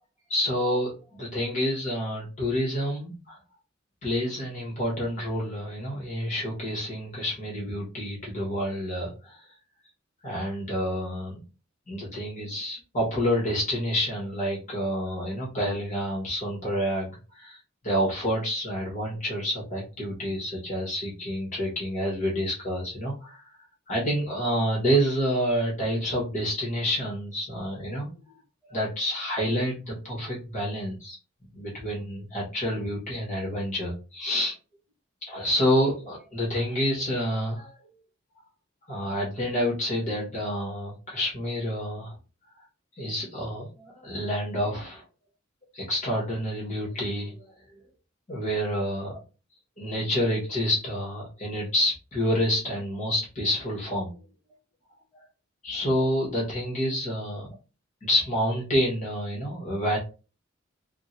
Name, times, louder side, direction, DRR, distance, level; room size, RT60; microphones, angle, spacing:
voice 1, 0.3-3.4 4.0-9.4 10.2-11.4 11.9-17.6 17.8-23.4 23.9-28.1 28.7-31.2 31.5-34.6 35.3-37.8 38.9-42.1 43.0-45.0 45.7-47.4 48.3-49.1 49.8-54.1 55.1-55.2 55.6-57.5 58.0-60.0, equal, 40° left, -4 dB, 1.4 m, -28 dB
3.6 x 2.2 x 2.7 m, 0.33 s
head